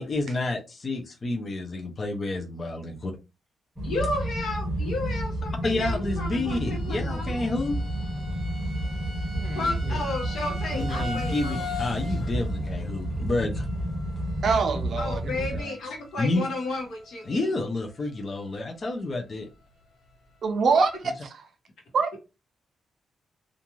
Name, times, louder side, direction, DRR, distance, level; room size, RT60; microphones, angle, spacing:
voice 1, 0.0-3.1 5.6-7.8 10.7-13.7 16.2-16.5 17.3-19.5, left 2 dB, 30° left, 0.5 m, -29 dB
voice 2, 3.8-7.5 9.5-11.6 12.2-12.3 15.0-17.5, left 2 dB, 70° left, 1.1 m, -33 dB
sound 1, 3.8-15.6, right 1 dB, 10° right, 0.8 m, -30 dB
sound 2, 6.0-16.7 16.9-17.5 17.9-18.0 18.4-18.5, left 1 dB, 90° left, 1.4 m, -42 dB
voice 3, 9.3-10.0 14.4-15.8 20.4-21.4 21.9-22.2, right 4 dB, 50° right, 0.5 m, -26 dB
2.5 x 2.3 x 3.0 m
wide cardioid pair, 165°, 0 cm